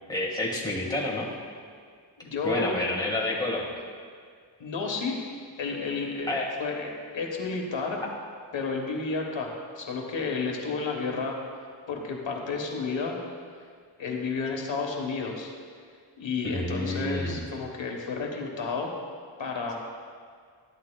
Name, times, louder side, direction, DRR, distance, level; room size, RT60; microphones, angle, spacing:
voice 1, 0.1-1.3 2.4-3.8 6.3-6.5 16.4-17.4, left 1 dB, 10° left, -4 dB, 1.6 m, -29 dB
voice 2, 2.2-2.8 4.6-5.2 5.6-8.0 8.5-11.4 11.9-13.2 14.0-15.5 16.2-18.9 19.4-19.7, left 4 dB, 90° left, 1 dB, 1.2 m, -31 dB
12.0 x 11.0 x 2.2 m, 2.1 s
wide cardioid pair, 150°, 44 cm